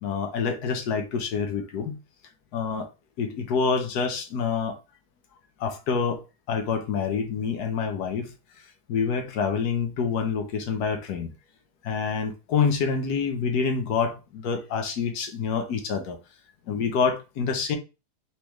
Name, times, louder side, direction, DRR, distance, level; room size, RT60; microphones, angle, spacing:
voice 1, 0.0-2.0 2.5-2.9 3.2-4.8 5.6-6.2 6.5-8.3 8.9-11.3 11.8-16.2 16.7-17.8, left 5 dB, 70° left, 1.3 m, -27 dB
4.1 x 3.5 x 3.1 m
omnidirectional pair, 1.8 m